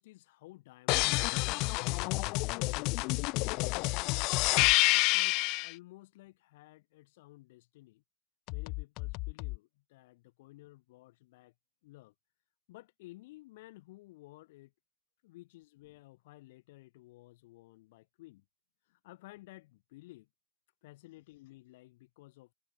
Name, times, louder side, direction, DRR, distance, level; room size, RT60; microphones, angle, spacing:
voice 1, 0.0-8.0 8.5-11.5 11.8-12.1 12.7-14.7 15.2-18.4 18.8-20.3 20.8-22.5, left 19 dB, 70° left, 7.7 m, -54 dB
sound 1, 0.9-5.7 8.5-9.6, left 26 dB, 50° left, 1.2 m, -29 dB
supercardioid pair, 135°, 0 cm